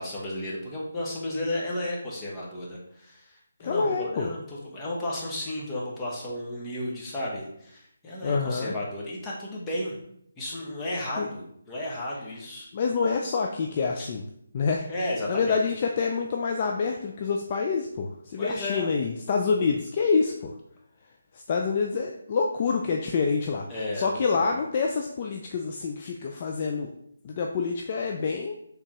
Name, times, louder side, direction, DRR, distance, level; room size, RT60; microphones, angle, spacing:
voice 1, 0.0-10.0 10.4-12.7 14.0-14.1 14.9-15.6 18.4-18.9 23.7-24.6, left 1 dB, 15° left, -5 dB, 0.9 m, -33 dB
voice 2, 3.6-4.3 8.2-8.7 11.2-11.3 12.7-14.2 14.5-14.9 15.3-20.5 21.3-23.6 24.0-26.9 27.2-28.6, left 5 dB, 35° left, 2 dB, 0.3 m, -27 dB
4.7 x 3.4 x 3.0 m, 0.72 s
figure-of-eight pair, 160°, 0 cm